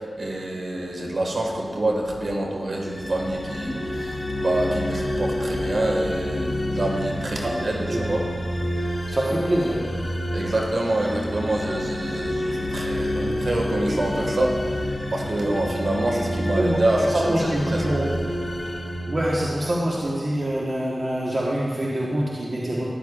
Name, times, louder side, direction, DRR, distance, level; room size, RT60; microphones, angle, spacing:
voice 1, 0.2-8.2 9.0-9.5 10.3-17.3 17.7-18.0, right 1 dB, 65° right, 0 dB, 1.8 m, -26 dB
sound 1, 2.8-19.9, left 1 dB, 30° left, 1.5 m, -29 dB
voice 2, 9.1-9.9 16.5-16.8 17.1-18.1 19.1-22.9, right 1 dB, 50° right, -4 dB, 1.3 m, -25 dB
13.0 x 10.5 x 2.5 m, 2.1 s
cardioid pair, 45°, 0 cm